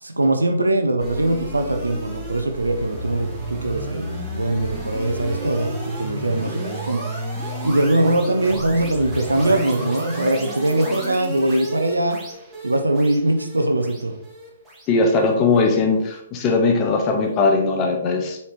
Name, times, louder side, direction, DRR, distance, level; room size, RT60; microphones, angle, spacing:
voice 1, 0.0-7.1 7.6-12.2 12.6-14.1, right 1 dB, 85° right, 6 dB, 0.7 m, -21 dB
sound 1, 1.0-16.2, right 1 dB, 10° right, 2.0 m, -32 dB
voice 2, 14.9-18.4, left 3 dB, 25° left, 1 dB, 1.4 m, -19 dB
7.1 x 4.4 x 3.2 m, 0.75 s
figure-of-eight pair, 125°, 0 cm